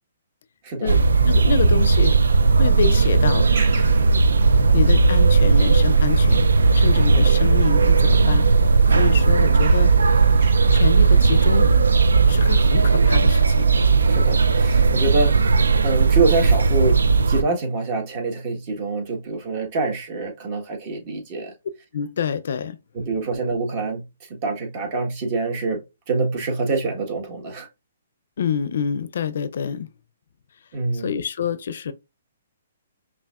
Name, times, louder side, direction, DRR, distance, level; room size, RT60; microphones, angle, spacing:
voice 1, 0.8-3.5 3.9-4.0 4.7-6.5 6.7-8.5 8.9-9.9 10.7-11.7 12.3-13.7 21.9-22.8 28.4-29.9 30.9-31.9, left 7 dB, 65° left, 0.4 m, -27 dB
sound 1, 0.9-17.4, right 4 dB, 85° right, 0.3 m, -16 dB
sound 2, 3.5-10.8, right 4 dB, 60° right, 1.0 m, -41 dB
voice 2, 14.1-15.5 15.8-21.5 22.9-24.0 24.4-25.8 26.1-27.7 30.7-31.1, right 3 dB, 40° right, 1.3 m, -25 dB
5.4 x 2.5 x 2.4 m
hypercardioid pair, 140°, 0 cm